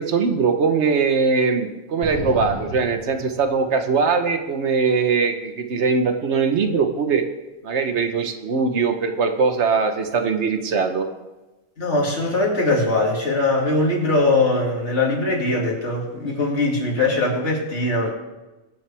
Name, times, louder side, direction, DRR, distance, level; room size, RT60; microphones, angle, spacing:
voice 1, 0.0-7.2 7.6-11.1, right 5 dB, 80° right, 6 dB, 1.3 m, -21 dB
sound 1, 2.0-3.9, left 1 dB, 40° left, 1.5 m, -33 dB
voice 2, 11.8-18.1, left 2 dB, 85° left, -2 dB, 2.8 m, -21 dB
22.5 x 7.6 x 3.4 m, 1.1 s
omnidirectional pair, 1.1 m